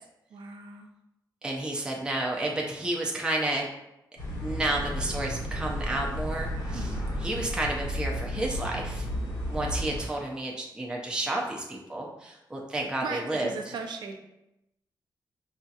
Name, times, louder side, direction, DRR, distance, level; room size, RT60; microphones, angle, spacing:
voice 1, 0.3-0.9 6.7-7.1 13.0-14.2, right 4 dB, 75° right, 4 dB, 0.5 m, -38 dB
voice 2, 1.4-3.6 4.4-6.9 7.2-9.1 9.5-13.5, right 1 dB, 10° right, -2 dB, 0.5 m, -31 dB
sound 1, 4.2-10.0, equal, 85° left, 1.3 m, -33 dB
4.8 x 2.7 x 2.4 m, 0.89 s
wide cardioid pair, 130°, 8 cm